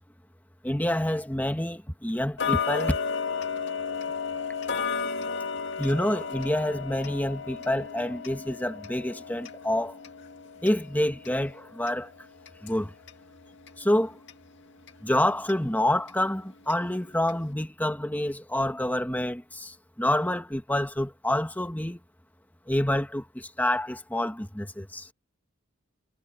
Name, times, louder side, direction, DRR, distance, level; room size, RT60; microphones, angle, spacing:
voice 1, 0.6-3.0 5.8-10.0 10.6-12.1 12.6-12.9 13.8-14.2 15.0-22.0 22.7-25.1, left 1 dB, 10° left, 1.8 m, -27 dB
Tick-tock, 2.4-13.2 13.6-13.7 14.3-14.4 14.9-15.0 15.5-15.6 16.1-16.2 16.7-16.8 17.3-17.4, left 6 dB, 60° left, 2.1 m, -34 dB
head